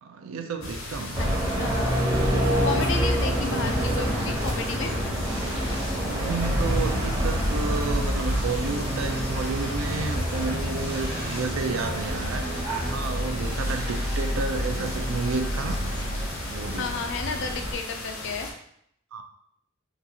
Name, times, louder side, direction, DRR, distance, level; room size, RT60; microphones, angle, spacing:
voice 1, 0.0-1.2 6.0-12.5 12.9-15.8 16.4-17.0 19.1-19.2, right 4 dB, 80° right, 6 dB, 0.4 m, -31 dB
sound 1, 0.6-18.5, left 1 dB, 85° left, 0.8 m, -34 dB
sound 2, 1.1-17.7, equal, 15° right, 0.8 m, -29 dB
voice 2, 1.2-2.1 2.6-4.9 13.6-14.0 16.8-18.5, left 4 dB, 60° left, 5 dB, 0.4 m, -33 dB
sound 3, 3.5-16.5, equal, 55° right, 0.8 m, -34 dB
3.9 x 2.4 x 2.8 m, 0.70 s
head